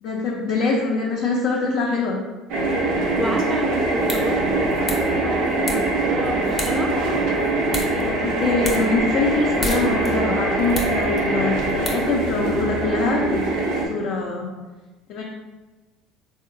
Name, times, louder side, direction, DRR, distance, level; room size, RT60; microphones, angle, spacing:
voice 1, 0.0-2.2 7.9-14.5 15.1-15.2, left 3 dB, 70° left, -4 dB, 0.4 m, -24 dB
sound 1, 2.5-13.9, right 2 dB, 75° right, 0.5 m, -23 dB
voice 2, 3.2-7.0, right 1 dB, 15° right, 2 dB, 0.5 m, -30 dB
sound 2, 3.8-12.6, left 1 dB, 30° left, 0.6 m, -35 dB
3.6 x 2.1 x 2.5 m, 1.2 s
supercardioid pair, 90°, 0 cm